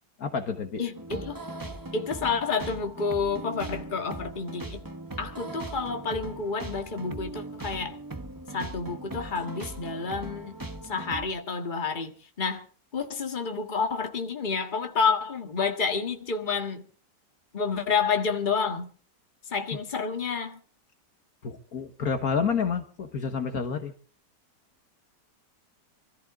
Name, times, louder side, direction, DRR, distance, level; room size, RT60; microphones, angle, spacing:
voice 1, 0.2-0.8 21.4-23.9, left 6 dB, 60° left, 1.7 m, -29 dB
voice 2, 0.8-1.4 1.9-4.8 5.2-8.0 8.5-12.6 12.9-16.8 17.5-18.9 19.4-20.6, left 5 dB, 30° left, 1.8 m, -29 dB
sound 1, 0.9-11.3, right 2 dB, 15° right, 1.0 m, -39 dB
25.0 x 14.0 x 3.7 m
omnidirectional pair, 1.9 m